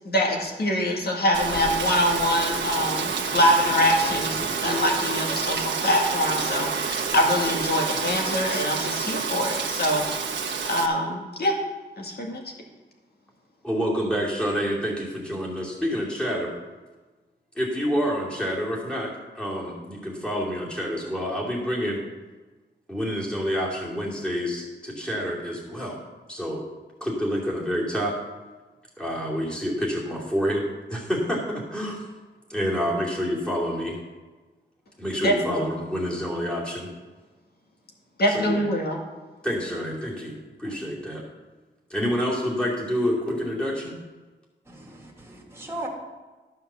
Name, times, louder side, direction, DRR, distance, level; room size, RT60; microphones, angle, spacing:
voice 1, 0.1-10.1 10.7-11.5 12.0-12.4 35.2-35.7 38.2-39.0, equal, 55° left, 1 dB, 2.0 m, -24 dB
Rain, 1.3-10.9, right 5 dB, 80° right, 1.2 m, -28 dB
voice 2, 13.6-16.5 17.5-22.0 22.9-26.0 26.3-26.6 27.0-28.2 29.0-32.0 32.5-34.0 35.0-36.9 38.3-38.6 39.4-41.3 41.9-44.0, equal, 5° left, -4 dB, 2.6 m, -28 dB
voice 3, 44.7-45.9, right 2 dB, 15° right, -2 dB, 2.0 m, -37 dB
12.5 x 5.8 x 6.8 m, 1.3 s
wide cardioid pair, 170°, 19 cm